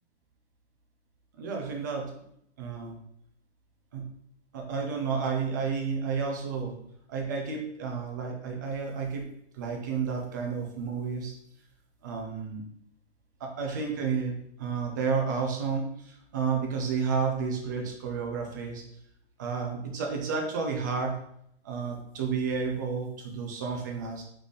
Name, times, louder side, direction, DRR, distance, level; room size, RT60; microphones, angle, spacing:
voice 1, 1.4-2.1 2.6-3.0 3.9-4.1 4.5-6.8 7.1-9.3 9.5-11.3 12.0-12.6 13.4-14.3 14.6-18.8 19.4-21.1 21.6-24.2, right 5 dB, 20° right, 1 dB, 0.4 m, -31 dB
4.0 x 3.3 x 3.5 m, 0.72 s
hypercardioid pair, 150°, 34 cm